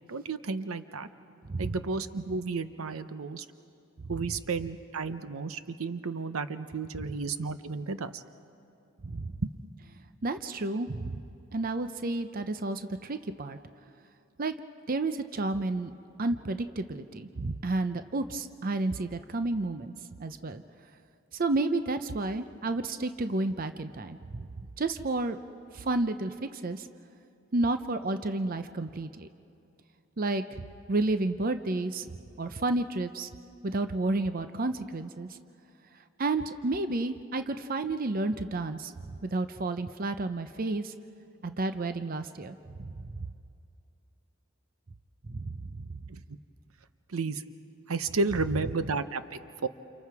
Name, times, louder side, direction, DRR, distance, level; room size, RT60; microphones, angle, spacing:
voice 1, 0.1-1.1 1.6-3.5 4.1-8.2 9.4-9.5 46.1-46.2 47.1-47.4 47.9-49.7, right 4 dB, 85° right, 11 dB, 0.8 m, -32 dB
voice 2, 1.4-1.8 7.0-7.1 9.0-9.3 10.2-11.2 11.5-13.6 14.4-14.5 14.9-15.9 16.2-19.9 20.2-20.6 21.3-25.4 25.7-26.9 27.5-29.3 30.2-30.4 30.9-32.1 32.4-33.3 33.6-35.4 36.2-38.9 39.2-40.9 41.4-43.3 45.3-45.8, right 2 dB, 40° right, 9 dB, 0.6 m, -31 dB
29.5 x 28.5 x 4.8 m, 2.6 s
head